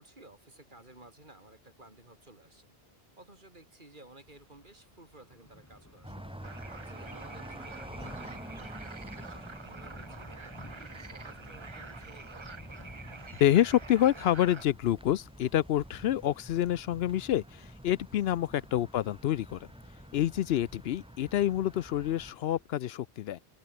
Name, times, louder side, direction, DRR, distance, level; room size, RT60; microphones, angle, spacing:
voice 1, 0.0-2.7 3.2-6.3 6.8-10.3 10.7-12.4 18.4-18.7 20.5-20.9, right 2 dB, 50° right, 4.2 m, -56 dB
Thunder / Rain, 4.2-22.6, left 1 dB, 15° left, 3.2 m, -54 dB
sound 1, 6.0-22.3, right 1 dB, 5° right, 1.4 m, -48 dB
sound 2, 6.4-14.6, right 4 dB, 30° right, 1.0 m, -47 dB
voice 2, 13.4-19.6 20.1-23.4, left 12 dB, 75° left, 0.8 m, -27 dB
open air
omnidirectional pair, 1.1 m